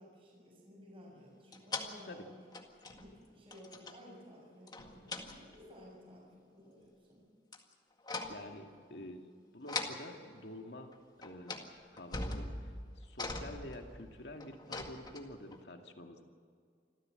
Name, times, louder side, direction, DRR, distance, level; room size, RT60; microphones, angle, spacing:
voice 1, 0.0-2.4 2.9-7.3 8.9-9.0, equal, 30° right, -2 dB, 7.1 m, -55 dB
sound 1, 1.5-1.9 2.5-3.2 3.5-4.0 4.7-5.7 7.5-7.7 8.0-8.5 9.7-10.0 10.9-11.0 11.2-11.7 12.0-15.6, left 3 dB, 25° left, 1.9 m, -41 dB
voice 2, 8.3-9.2 9.5-10.9 11.2-11.6 11.9-12.7 13.0-16.2, left 1 dB, 70° left, 4 dB, 2.3 m, -48 dB
26.5 x 15.0 x 7.9 m, 2.2 s
head